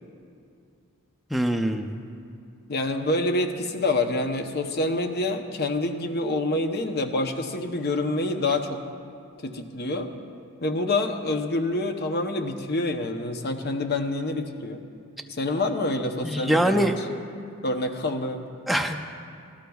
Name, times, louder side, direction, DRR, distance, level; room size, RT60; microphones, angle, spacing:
voice 1, 1.3-1.9 16.2-16.9 18.7-19.0, right 1 dB, ahead, 3 dB, 0.4 m, -23 dB
voice 2, 2.7-8.8 9.4-10.1 10.6-14.8 15.3-16.9 17.6-18.5, left 2 dB, 45° left, 5 dB, 0.7 m, -27 dB
18.5 x 13.0 x 2.3 m, 2.4 s
head